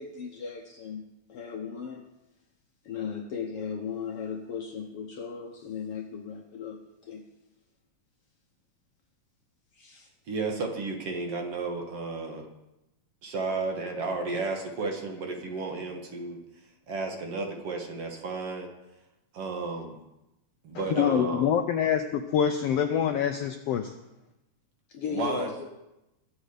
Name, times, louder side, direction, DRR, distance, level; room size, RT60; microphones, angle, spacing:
voice 1, 0.0-2.1 2.9-7.2 9.8-10.1 24.9-25.7, left 6 dB, 65° left, 3 dB, 1.6 m, -37 dB
voice 2, 10.3-12.5 13.2-16.4 16.9-18.7 19.3-20.0 20.6-21.5 25.1-25.5, right 3 dB, 55° right, 2 dB, 2.5 m, -32 dB
voice 3, 20.7-23.9, left 8 dB, 80° left, 6 dB, 1.4 m, -26 dB
23.0 x 7.7 x 5.0 m, 0.95 s
omnidirectional pair, 3.5 m